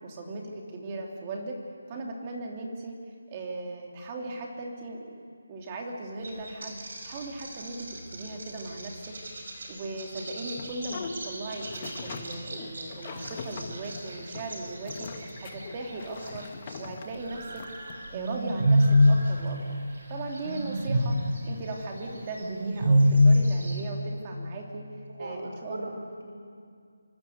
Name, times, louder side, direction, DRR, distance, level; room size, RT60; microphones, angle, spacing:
voice 1, 0.0-1.6 1.9-2.9 3.3-5.1 5.5-16.5 16.8-17.6 18.1-19.8 20.1-21.1 21.4-24.9 25.2-25.9, right 2 dB, 20° right, 0 dB, 2.9 m, -38 dB
sound 1, 6.2-16.9 17.1-23.8, left 1 dB, 45° right, 5.9 m, -28 dB
sound 2, 10.5-17.9, left 4 dB, 25° left, 1.5 m, -42 dB
voice 2, 25.1-26.3, right 1 dB, 80° right, 1 dB, 6.1 m, -39 dB
25.5 x 23.0 x 8.0 m, 2.2 s
figure-of-eight pair, 175°, 0 cm